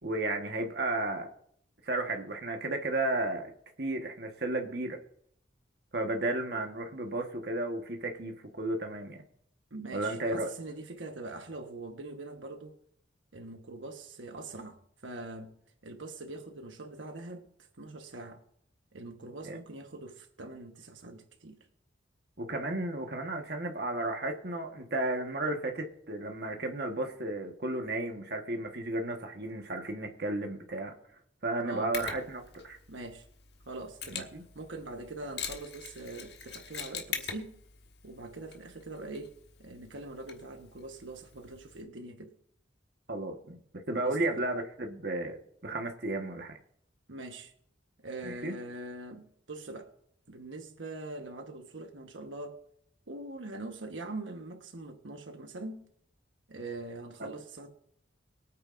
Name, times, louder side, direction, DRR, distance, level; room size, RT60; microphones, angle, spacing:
voice 1, 0.0-1.3 1.8-3.5 3.8-5.0 5.9-9.2 9.9-10.5 19.4-19.6 22.4-30.9 31.4-32.8 34.1-34.4 43.1-43.6 43.9-46.6 48.2-48.6, right 2 dB, 55° right, 1.4 m, -33 dB
voice 2, 9.7-12.7 13.3-15.6 15.8-17.5 17.8-18.4 18.9-21.6 31.6-32.0 32.9-33.2 33.7-37.6 38.0-42.3 44.0-44.4 47.1-47.5 48.0-49.9 50.3-52.6 53.1-55.9 56.5-57.7, right 2 dB, 85° right, 1.2 m, -43 dB
Mechanisms, 31.9-41.8, left 7 dB, 60° left, 1.5 m, -44 dB
22.5 x 8.9 x 2.6 m
head